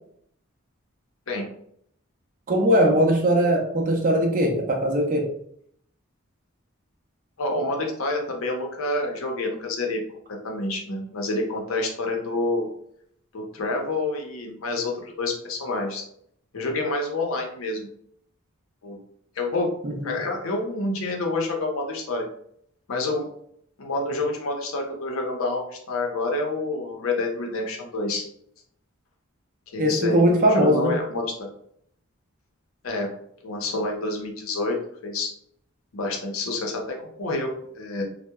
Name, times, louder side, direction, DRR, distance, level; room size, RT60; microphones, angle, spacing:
voice 1, 2.5-5.3 19.8-20.1 29.8-30.9, equal, 40° right, 1 dB, 0.5 m, -20 dB
voice 2, 7.4-10.0 10.3-12.7 13.3-16.0 16.5-17.9 18.8-19.0 19.4-19.7 20.0-22.3 22.9-23.3 23.8-28.2 29.7-31.5 32.8-33.1 33.4-34.8 35.0-35.3 35.9-38.0, left 2 dB, 75° left, 1 dB, 0.6 m, -28 dB
2.8 x 2.1 x 2.2 m, 0.69 s
head